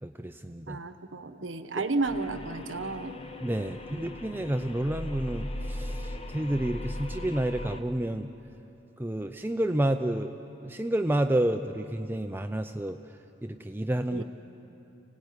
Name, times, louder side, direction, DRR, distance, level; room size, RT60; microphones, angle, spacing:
voice 1, 0.0-0.8 3.4-8.3 9.0-10.3 10.6-13.0 13.4-14.2, right 1 dB, 10° right, 7 dB, 0.5 m, -30 dB
voice 2, 0.7-3.2 14.1-14.2, right 3 dB, 85° right, 10 dB, 1.2 m, -32 dB
sound 1, 2.0-7.8, left 1 dB, 30° left, 1.1 m, -38 dB
26.0 x 17.5 x 9.6 m, 3.0 s
head